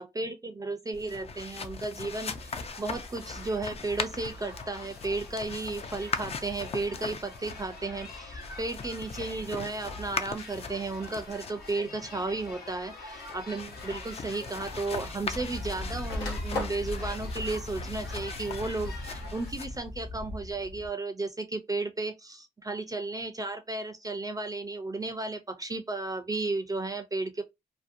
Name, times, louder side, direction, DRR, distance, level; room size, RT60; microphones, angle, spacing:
voice 1, 0.0-27.4, right 3 dB, 20° right, 0.4 m, -34 dB
sound 1, 0.9-20.9, left 3 dB, 35° left, 0.4 m, -39 dB
sound 2, 2.1-19.5, left 3 dB, 65° left, 1.0 m, -47 dB
sound 3, 11.2-11.6 12.6-12.7 14.1-14.2 14.4-15.5 15.8-16.9, left 3 dB, 90° left, 1.0 m, -37 dB
2.6 x 2.1 x 2.5 m
cardioid pair, 70°, 17 cm